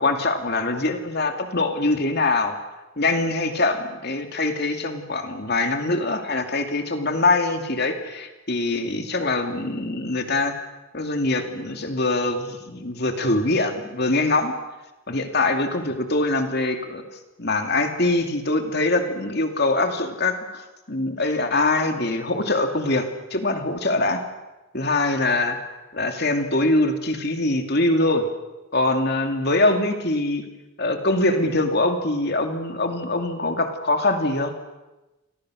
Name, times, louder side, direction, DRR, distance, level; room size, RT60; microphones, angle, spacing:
voice 1, 0.0-2.5 3.0-10.5 10.9-14.5 15.1-17.0 17.4-24.2 24.7-25.6 25.9-28.3 28.7-30.4 30.8-34.5, left 2 dB, 50° left, 5 dB, 2.8 m, -23 dB
29.0 x 24.0 x 6.5 m, 1.1 s
head